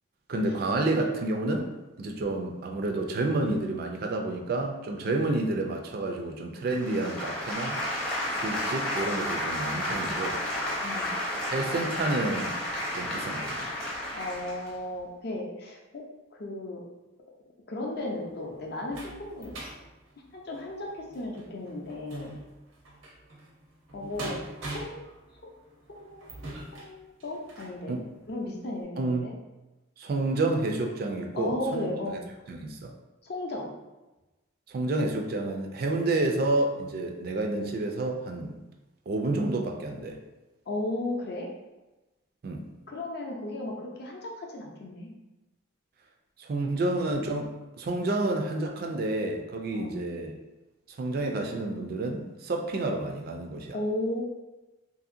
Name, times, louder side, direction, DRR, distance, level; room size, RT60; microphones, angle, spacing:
voice 1, 0.3-8.1 8.3-10.4 11.5-12.6 12.9-13.7 27.9-28.0 29.0-29.3 30.0-31.9 32.5-32.9 34.7-38.6 39.1-40.2 42.4-42.6 46.4-47.5 47.8-50.3 50.9-53.8, right 2 dB, 45° right, 2 dB, 0.3 m, -29 dB
sound 1, 6.7-14.7, left 1 dB, 5° left, 0.5 m, -32 dB
voice 2, 10.8-11.1 14.1-16.1 16.4-16.8 17.7-19.5 20.3-22.3 23.9-25.1 25.4-25.5 25.9-26.4 26.7-28.0 28.3-29.3 31.4-32.2 33.2-33.7 40.7-41.5 42.9-45.1 49.7-49.9 53.7-54.2, left 1 dB, 50° left, -1 dB, 0.5 m, -35 dB
sound 2, 18.0-27.8 28.4-28.5 28.8-28.9, right 1 dB, 85° right, 0.7 m, -43 dB
2.8 x 2.7 x 2.5 m, 1.1 s
head